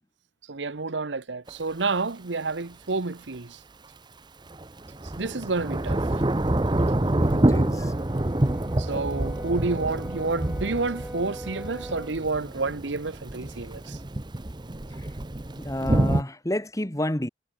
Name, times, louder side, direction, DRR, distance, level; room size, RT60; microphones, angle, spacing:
voice 1, 0.5-3.6 5.2-6.0 8.8-14.0, right 3 dB, 90° right, 1.1 m, -29 dB
Thunder / Rain, 1.5-1.6 4.5-16.2, right 1 dB, 25° right, 0.8 m, -27 dB
voice 2, 7.3-8.0 12.6-12.7 15.6-17.3, left 1 dB, 20° left, 2.0 m, -30 dB
Brass instrument, 7.9-12.2, right 1 dB, 10° right, 1.5 m, -40 dB
head